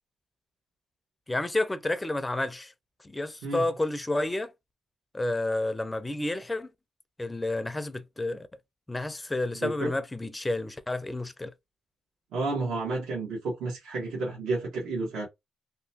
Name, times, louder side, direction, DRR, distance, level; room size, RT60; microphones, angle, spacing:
voice 1, 1.3-2.7 3.0-4.5 5.1-6.7 7.2-8.5 8.9-11.5, left 2 dB, 15° left, 0.4 m, -30 dB
voice 2, 12.3-15.3, right 3 dB, 80° right, 1.2 m, -31 dB
2.9 x 2.2 x 2.7 m
cardioid pair, 90°, 0 cm